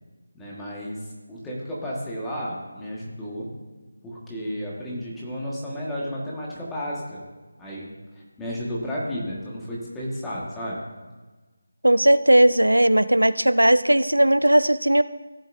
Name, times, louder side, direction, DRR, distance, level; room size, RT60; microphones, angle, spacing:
voice 1, 0.3-3.5 4.0-7.2 7.6-7.9 8.4-10.8, equal, 5° left, -6 dB, 1.6 m, -32 dB
voice 2, 11.8-15.0, right 1 dB, 90° right, 15 dB, 0.4 m, -17 dB
16.0 x 7.2 x 2.6 m, 1.3 s
figure-of-eight pair, 160°, 0 cm